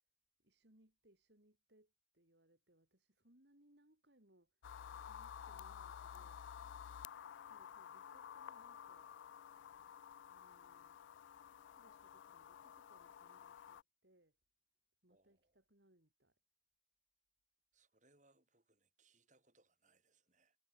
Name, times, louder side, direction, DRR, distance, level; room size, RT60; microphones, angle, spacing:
voice 1, 0.4-6.5 7.4-9.1 10.2-11.0 11.5-14.4 15.0-16.4, right 1 dB, 65° right, 4.0 m, -72 dB
sound 1, 4.6-13.8, left 8 dB, 80° left, 0.3 m, -53 dB
voice 2, 15.1-15.6 17.7-20.6, right 3 dB, 40° right, 7.5 m, -74 dB
head